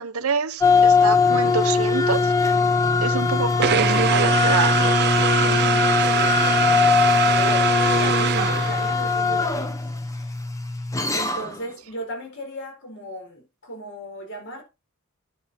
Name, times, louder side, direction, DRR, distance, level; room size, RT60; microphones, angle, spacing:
voice 1, 0.0-2.3 3.0-4.8, right 5 dB, 80° right, 0.8 m, -27 dB
sound 1, 0.6-11.6, left 4 dB, 15° left, 1.1 m, -20 dB
sound 2, 3.6-9.2, right 8 dB, 50° right, 0.5 m, -23 dB
voice 2, 5.4-10.3 10.7-14.6, right 1 dB, 60° left, 4.7 m, -36 dB
9.9 x 6.4 x 4.3 m
head